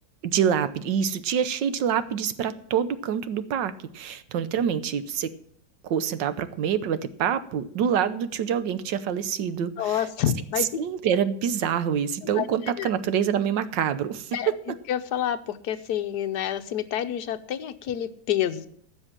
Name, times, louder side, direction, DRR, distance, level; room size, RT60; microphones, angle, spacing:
voice 1, 0.2-5.3 5.8-10.0 10.8-14.5, right 8 dB, 75° right, 13 dB, 1.5 m, -26 dB
voice 2, 9.8-10.8 12.3-12.5 12.8-12.9 14.3-14.5 14.9-18.7, left 10 dB, 65° left, 10 dB, 1.3 m, -28 dB
15.0 x 6.4 x 7.4 m, 0.64 s
omnidirectional pair, 2.0 m